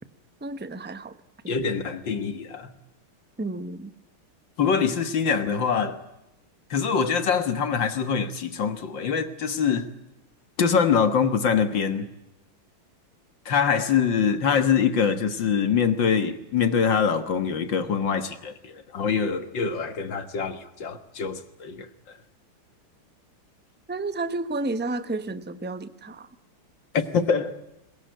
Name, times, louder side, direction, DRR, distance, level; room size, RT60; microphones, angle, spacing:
voice 1, 0.4-1.2 1.4-1.8 3.4-3.9 23.9-26.3, right 2 dB, 15° right, 0.3 m, -31 dB
voice 2, 1.5-2.7 4.6-6.0 6.7-9.9 10.6-12.1 13.5-21.9 26.9-27.6, left 6 dB, 60° left, 2.1 m, -24 dB
22.0 x 21.5 x 9.3 m
omnidirectional pair, 2.3 m